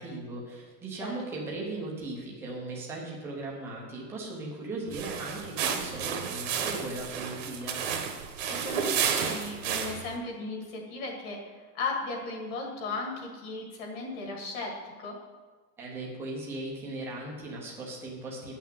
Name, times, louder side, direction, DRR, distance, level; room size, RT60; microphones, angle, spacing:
voice 1, 0.0-7.8 15.8-18.5, right 2 dB, 5° right, -3 dB, 0.6 m, -38 dB
sound 1, 4.9-10.2, right 7 dB, 45° right, 1.2 m, -32 dB
voice 2, 8.6-14.7 15.0-15.1, left 3 dB, 35° left, 1 dB, 1.9 m, -36 dB
9.2 x 5.9 x 7.4 m, 1.4 s
supercardioid pair, 175°, 49 cm